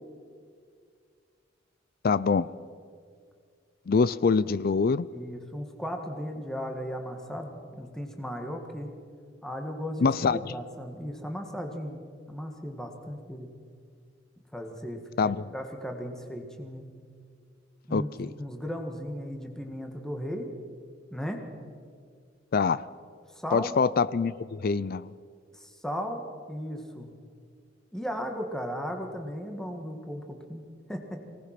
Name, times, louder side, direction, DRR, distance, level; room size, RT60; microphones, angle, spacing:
voice 1, 2.0-2.5 3.9-5.1 10.0-10.4 15.2-15.5 17.9-18.3 22.5-22.8 23.5-25.1, left 5 dB, 50° left, 18 dB, 0.4 m, -25 dB
voice 2, 5.1-8.9 9.4-12.0 12.3-13.5 14.5-16.9 17.9-20.5 21.1-21.4 23.3-23.8 25.5-27.1 27.9-30.6 30.9-31.2, equal, 5° left, 3 dB, 1.7 m, -36 dB
24.0 x 18.5 x 5.9 m, 2.1 s
head